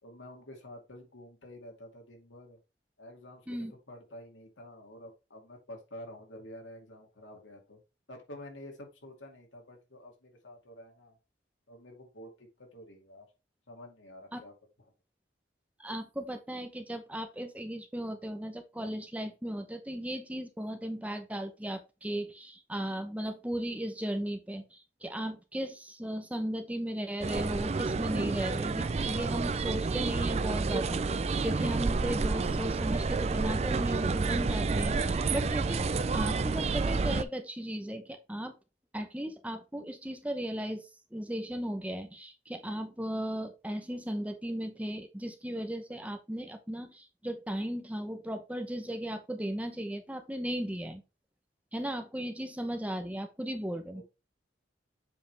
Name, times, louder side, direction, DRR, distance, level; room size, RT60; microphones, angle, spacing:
voice 1, 0.0-2.6 3.0-7.8 8.1-11.2 11.7-13.3 13.7-14.5 53.9-54.0, left 1 dB, 90° left, 2 dB, 2.3 m, -49 dB
voice 2, 15.8-35.9 36.1-38.5 38.9-51.0 51.7-54.0, equal, 10° right, 7 dB, 0.8 m, -36 dB
sound 1, 27.2-37.2, right 4 dB, 35° right, 0.4 m, -29 dB
7.6 x 5.1 x 3.4 m, 0.28 s
head